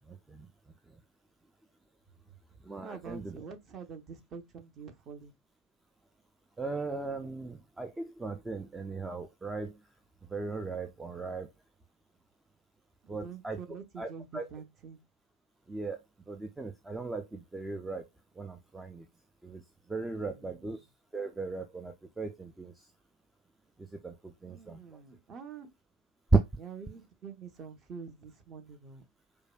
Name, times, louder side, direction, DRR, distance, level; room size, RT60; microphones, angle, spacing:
voice 1, 0.1-0.5 2.6-3.3 6.6-9.8 10.3-11.5 13.1-13.6 14.0-14.5 15.7-16.0 16.3-18.1 18.4-19.1 19.4-19.6 19.9-20.8 21.1-22.9 23.8-24.8, right 3 dB, 10° right, 0.3 m, -39 dB
voice 2, 2.8-5.4 13.0-15.0 20.2-20.7 24.5-25.7 26.6-29.0, right 6 dB, 25° right, 0.7 m, -46 dB
4.6 x 2.2 x 2.2 m
figure-of-eight pair, 90°, 0 cm